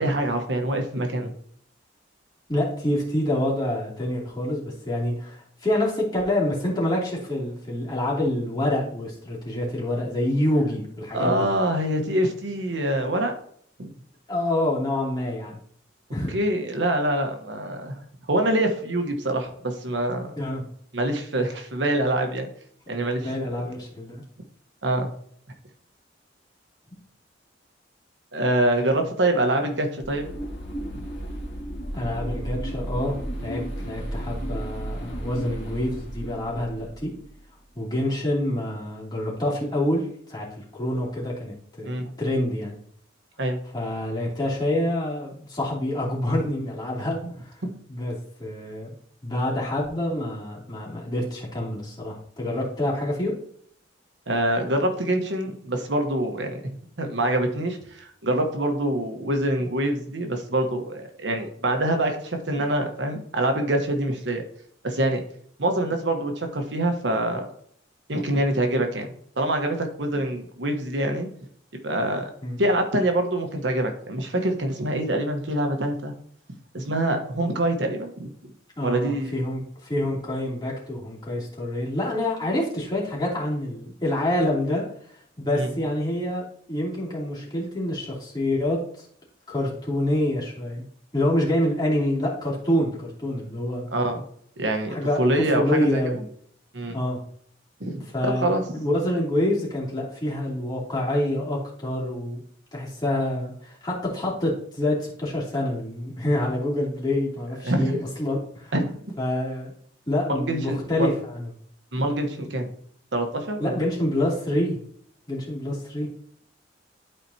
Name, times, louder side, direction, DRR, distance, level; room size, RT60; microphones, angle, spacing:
voice 1, 0.0-1.3 11.1-13.3 13.8-13.9 16.3-18.0 18.3-20.3 20.9-22.5 22.9-23.6 24.8-25.1 28.3-30.3 41.8-42.1 43.4-43.6 47.6-47.7 54.3-64.4 64.8-65.2 65.6-67.5 68.1-71.3 71.8-72.3 72.6-76.1 76.7-78.3 78.8-79.3 85.6-85.7 93.9-94.2 94.6-96.0 96.7-97.0 97.8-98.6 107.6-108.0 108.7-109.1 110.3-111.1 111.9-112.7 113.1-113.8, right 1 dB, 70° right, 4 dB, 1.1 m, -25 dB
voice 2, 2.5-11.5 14.3-15.6 16.1-16.4 20.4-20.6 23.2-24.2 31.9-33.1 33.4-37.1 37.7-42.8 43.7-47.5 47.9-48.9 49.2-53.3 72.4-72.6 78.8-84.8 85.4-89.0 89.5-90.8 91.1-93.8 94.9-95.2 95.5-96.2 96.9-97.2 98.1-102.4 102.7-108.7 109.2-109.7 110.1-111.5 113.6-114.8 115.3-116.1, left 1 dB, 25° left, -5 dB, 2.8 m, -27 dB
sound 1, 30.0-37.4, right 1 dB, 90° left, 1.6 m, -34 dB
12.0 x 4.5 x 2.8 m, 0.62 s
head